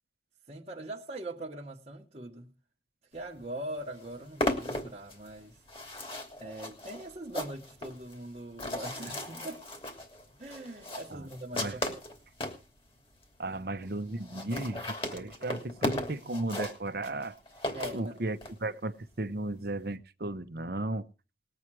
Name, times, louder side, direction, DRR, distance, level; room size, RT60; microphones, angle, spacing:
voice 1, 0.5-2.5 3.1-5.6 6.4-9.6 10.4-12.0 13.5-13.6 17.7-18.2, right 1 dB, 35° right, 1.3 m, -41 dB
sound 1, 3.4-3.5 3.8-12.6 13.2-13.3 13.5-13.6 13.8-13.9 14.2-18.5, left 1 dB, 30° left, 2.9 m, -36 dB
voice 2, 13.4-17.4 17.9-21.1, right 2 dB, 55° right, 1.0 m, -35 dB
20.0 x 8.8 x 4.8 m
head